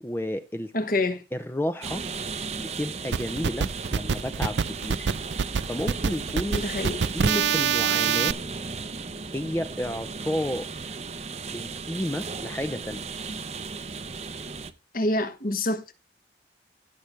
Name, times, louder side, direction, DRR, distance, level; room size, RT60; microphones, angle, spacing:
voice 1, 0.0-0.7 1.3-2.0 2.6-5.1 5.4-6.6 7.1-8.4 9.3-10.7 11.5-13.0, left 1 dB, 10° left, 0.5 m, -31 dB
voice 2, 0.7-1.2 6.5-7.0 14.9-15.9, left 2 dB, 50° left, 1.4 m, -27 dB
sound 1, 1.8-14.7, right 4 dB, 35° right, 0.7 m, -36 dB
sound 2, 3.1-8.3, right 6 dB, 75° right, 0.5 m, -25 dB
16.0 x 6.5 x 3.2 m
head